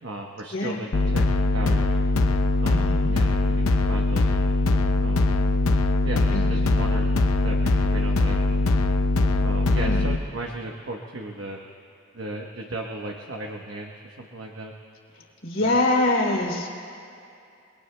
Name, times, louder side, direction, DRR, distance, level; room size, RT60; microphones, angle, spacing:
voice 1, 0.0-2.0 2.6-4.4 5.0-5.3 6.0-8.7 9.4-11.6 12.1-14.7 15.6-15.7, right 2 dB, 55° right, 0 dB, 1.0 m, -36 dB
sound 1, 0.9-10.2, left 2 dB, 75° left, 0.7 m, -21 dB
voice 2, 2.7-3.1 3.6-3.7 6.3-6.5 9.8-10.0 15.4-16.7, left 2 dB, 60° left, -2 dB, 3.1 m, -24 dB
30.0 x 21.5 x 2.2 m, 2.5 s
head